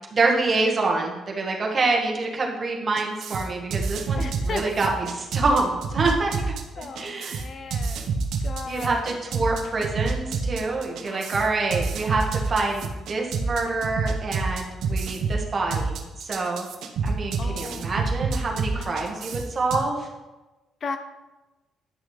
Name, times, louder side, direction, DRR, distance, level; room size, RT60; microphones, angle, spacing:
voice 1, 0.1-6.3 6.8-7.4 8.6-16.7 17.0-20.1, right 3 dB, 40° right, 0 dB, 1.6 m, -26 dB
sound 1, 3.0-19.8, right 4 dB, 75° right, 0.9 m, -28 dB
voice 2, 4.2-4.6 6.8-9.2 11.1-11.3 17.4-18.0 18.7-19.4 20.8-21.0, left 5 dB, 50° left, 9 dB, 0.6 m, -36 dB
10.0 x 6.3 x 3.3 m, 1.1 s
cardioid pair, 90°, 0 cm